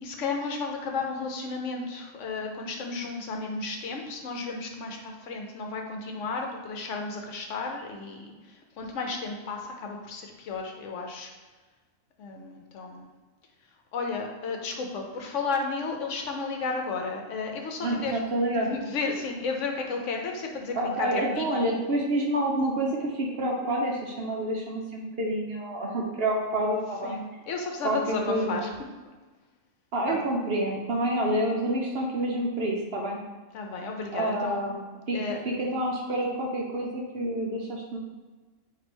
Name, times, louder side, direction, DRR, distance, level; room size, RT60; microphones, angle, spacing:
voice 1, 0.0-11.3 12.2-13.1 13.9-18.2 18.7-21.5 27.0-28.7 30.1-30.2 33.5-34.6 35.1-35.4, left 4 dB, 70° left, 2 dB, 0.9 m, -33 dB
voice 2, 17.8-18.7 20.7-27.2 27.8-28.6 29.9-33.2 34.1-35.2 35.4-38.0, right 1 dB, 60° right, -1 dB, 0.7 m, -28 dB
4.3 x 2.6 x 4.3 m, 1.3 s
omnidirectional pair, 1.4 m